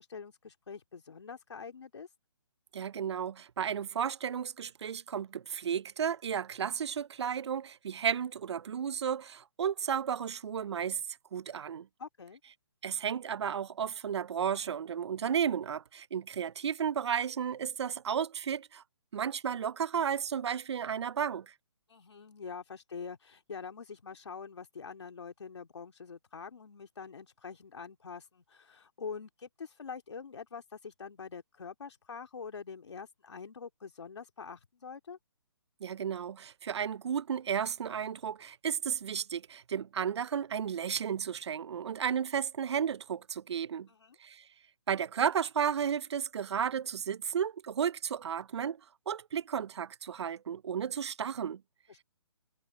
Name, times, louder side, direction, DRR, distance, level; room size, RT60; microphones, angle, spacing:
voice 1, 0.0-2.1 12.0-12.4 21.9-35.2 43.9-44.2 51.9-52.0, left 5 dB, 75° left, 2.6 m, -45 dB
voice 2, 2.7-11.0 11.3-11.9 12.8-18.8 19.1-21.5 35.8-43.9 44.2-44.4 44.9-48.8 49.1-51.6, right 8 dB, 70° right, 0.4 m, -33 dB
hypercardioid pair, 170°, 15 cm